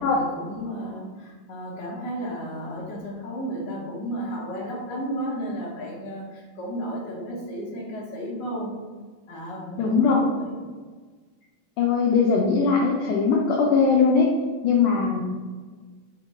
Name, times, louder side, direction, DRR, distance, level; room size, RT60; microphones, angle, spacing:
voice 1, 0.0-8.7 9.3-10.6, equal, 60° left, -4 dB, 1.1 m, -33 dB
voice 2, 9.8-10.2 11.8-14.3 14.6-15.2, left 5 dB, 85° left, -2 dB, 1.4 m, -20 dB
4.7 x 2.2 x 4.1 m, 1.4 s
omnidirectional pair, 3.4 m